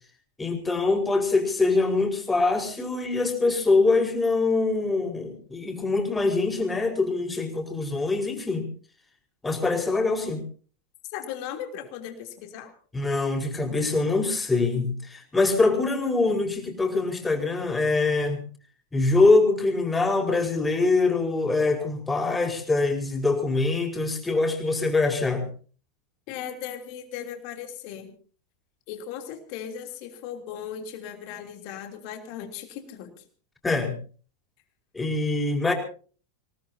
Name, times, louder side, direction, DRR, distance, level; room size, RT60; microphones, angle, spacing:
voice 1, 0.4-8.7 9.4-10.4 12.9-18.4 18.9-25.5 33.6-33.9 34.9-35.7, left 3 dB, 10° left, 3 dB, 4.8 m, -24 dB
voice 2, 11.1-12.7 26.3-28.1 28.9-33.2, left 9 dB, 50° left, 4 dB, 3.2 m, -37 dB
26.5 x 18.5 x 2.8 m, 0.40 s
figure-of-eight pair, 90°, 0 cm